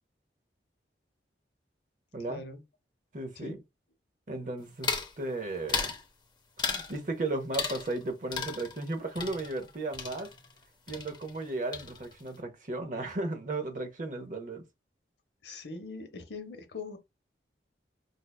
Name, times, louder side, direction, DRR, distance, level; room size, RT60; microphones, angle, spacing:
voice 1, 2.3-2.6 3.4-3.6 15.4-17.0, left 3 dB, 75° left, 0.7 m, -41 dB
voice 2, 3.1-3.6 4.3-6.0 6.6-10.3 10.9-14.6, right 2 dB, 45° right, 0.6 m, -35 dB
sound 1, 4.8-5.1 5.7-6.0 6.6-7.0 7.5-8.0 8.3-10.6 10.9-11.5 11.7-12.3, left 5 dB, 25° left, 0.5 m, -35 dB
4.8 x 2.2 x 2.2 m
head